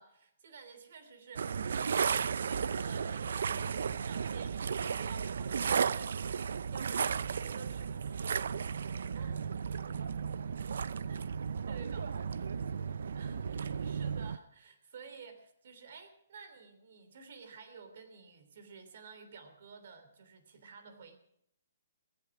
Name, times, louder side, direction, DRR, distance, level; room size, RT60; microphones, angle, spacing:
voice 1, 0.0-8.4 9.1-9.4 11.0-11.2 11.6-12.1 13.1-21.2, right 5 dB, 45° right, 10 dB, 3.1 m, -52 dB
sound 1, 1.4-14.4, right 6 dB, 60° right, 0.5 m, -34 dB
voice 2, 10.0-11.2 11.6-13.3, right 6 dB, 80° right, 11 dB, 1.0 m, -49 dB
18.5 x 16.0 x 4.8 m, 0.71 s
hypercardioid pair, 180°, 0 cm